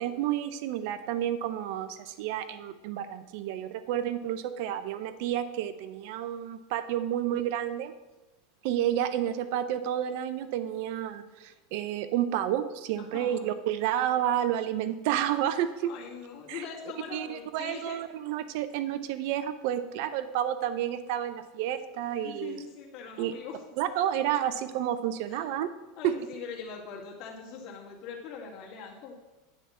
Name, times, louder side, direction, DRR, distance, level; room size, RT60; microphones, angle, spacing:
voice 1, 0.0-7.9 8.6-15.9 16.5-16.7 17.1-22.6 23.2-23.3 23.8-25.7 26.0-26.3, right 11 dB, 65° right, 12 dB, 0.5 m, -30 dB
voice 2, 13.0-13.5 15.8-18.0 22.2-23.6 24.0-24.1 25.3-25.5 26.0-29.1, left 6 dB, 55° left, -1 dB, 2.0 m, -42 dB
9.8 x 3.6 x 7.0 m, 1.1 s
supercardioid pair, 115°, 0 cm